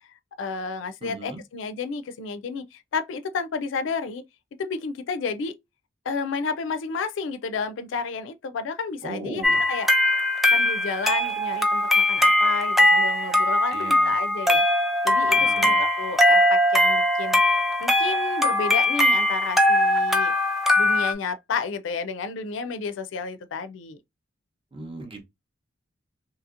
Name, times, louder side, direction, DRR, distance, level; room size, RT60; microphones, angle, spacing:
voice 1, 0.4-4.2 4.6-5.6 6.1-9.9 10.5-14.6 15.0-17.4 17.8-20.3 20.8-24.0, left 5 dB, 75° left, 0.4 m, -31 dB
voice 2, 1.0-1.4 9.0-9.6 13.7-14.1 15.3-15.8 24.7-25.3, right 2 dB, 30° right, 0.7 m, -37 dB
sound 1, 9.4-21.1, left 1 dB, ahead, 0.4 m, -21 dB
2.8 x 2.7 x 2.4 m
head